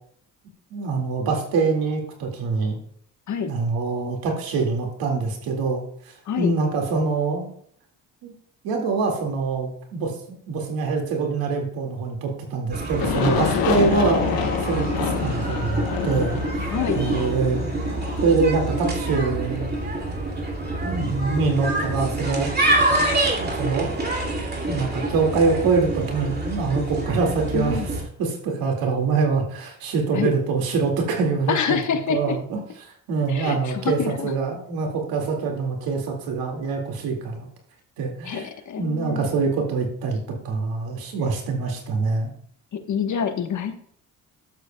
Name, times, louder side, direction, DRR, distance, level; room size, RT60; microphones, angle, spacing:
voice 1, 0.7-2.8 3.5-7.5 8.2-8.3 8.6-10.1 10.5-14.2 14.6-16.7 16.9-17.6 18.2-19.6 20.8-22.5 23.4-24.0 24.6-27.8 28.2-31.8 32.1-32.6 33.1-37.5 38.0-38.5 38.8-40.2 40.4-42.3, right 4 dB, 90° right, 1 dB, 2.1 m, -24 dB
voice 2, 6.2-6.6 16.7-17.1 27.5-27.9 30.1-30.3 31.5-32.4 33.3-34.3 38.2-39.3 42.7-43.8, left 7 dB, 55° left, 7 dB, 1.2 m, -27 dB
sound 1, 12.7-28.0, right 2 dB, 30° right, 2.3 m, -26 dB
Aircraft, 13.0-19.7, left 8 dB, 80° left, 1.0 m, -28 dB
12.0 x 8.0 x 2.2 m, 0.62 s
cardioid pair, 80°, 35 cm